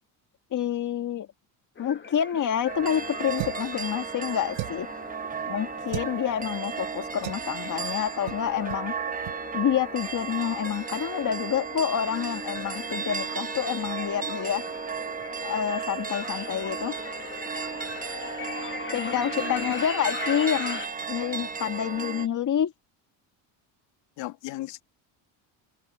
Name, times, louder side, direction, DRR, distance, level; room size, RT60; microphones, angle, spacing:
voice 1, 0.5-1.3 1.8-4.9 5.5-8.9 9.5-14.6 15.4-17.0 18.9-20.8 21.1-22.7, left 9 dB, 40° left, 1.7 m, -28 dB
sound 1, 1.8-20.9, left 5 dB, 25° left, 1.9 m, -41 dB
sound 2, 2.7-22.3, right 6 dB, 20° right, 1.0 m, -34 dB
sound 3, 3.4-3.7 4.5-5.0 5.9-6.1 7.2-7.5 8.3-8.4 8.7-8.9 9.2-9.4, right 21 dB, 75° right, 1.5 m, -35 dB
voice 2, 18.9-19.7 24.2-24.8, left 17 dB, 70° left, 2.5 m, -36 dB
supercardioid pair, 100°, 45 cm